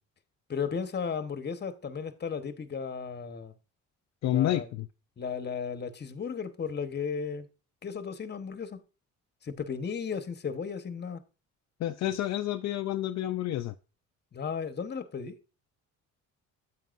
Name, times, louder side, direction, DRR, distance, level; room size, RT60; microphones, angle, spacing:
voice 1, 0.5-3.5 4.3-4.7 5.2-7.5 7.8-8.8 9.4-11.2 14.3-15.4, left 6 dB, 35° left, 1.0 m, -35 dB
voice 2, 4.2-4.9 11.8-13.7, left 13 dB, 60° left, 0.5 m, -29 dB
9.2 x 8.4 x 2.5 m
cardioid pair, 90°, 30 cm